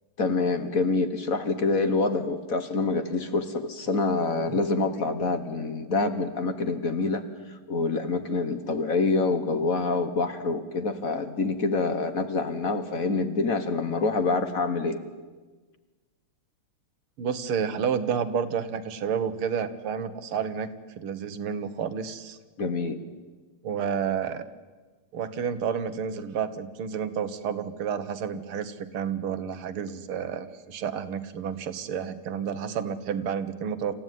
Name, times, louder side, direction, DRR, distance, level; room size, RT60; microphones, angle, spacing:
voice 1, 0.2-7.2 7.7-15.0 22.6-23.0, left 3 dB, 45° left, 9 dB, 1.5 m, -26 dB
voice 2, 17.2-20.7 21.0-22.4 23.6-24.4 25.1-33.9, right 7 dB, 85° right, 11 dB, 2.1 m, -30 dB
27.0 x 15.0 x 9.3 m, 1.4 s
omnidirectional pair, 2.3 m